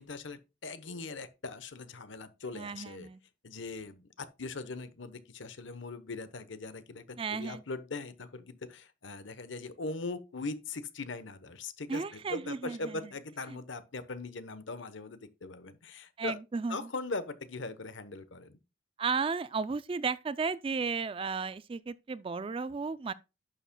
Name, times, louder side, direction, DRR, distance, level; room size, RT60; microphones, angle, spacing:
voice 1, 0.0-3.1 3.4-16.4 16.7-18.6, left 3 dB, 70° left, 1.0 m, -40 dB
voice 2, 2.5-3.2 7.2-7.6 11.9-13.0 13.5-13.6 16.2-16.9 19.0-23.1, right 4 dB, 25° right, 0.3 m, -34 dB
11.0 x 7.1 x 2.2 m
head